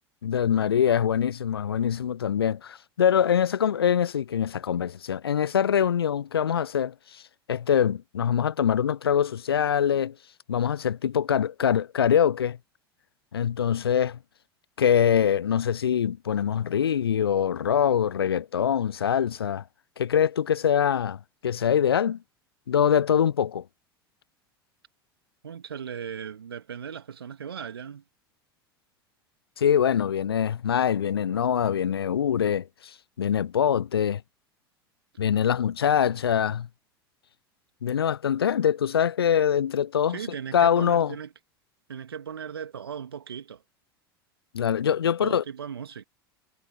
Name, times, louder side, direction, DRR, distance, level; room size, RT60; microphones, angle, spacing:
voice 1, 0.2-7.2 7.5-10.1 10.5-12.6 13.3-14.2 14.8-19.6 20.0-22.2 22.7-23.6 29.6-34.2 35.2-36.7 37.8-40.2 40.5-41.1 44.5-45.4, left 8 dB, 75° left, 0.5 m, -24 dB
voice 2, 25.4-28.0 40.1-41.3 41.9-43.6 45.2-46.0, right 7 dB, 75° right, 2.3 m, -37 dB
figure-of-eight pair, 75°, 13 cm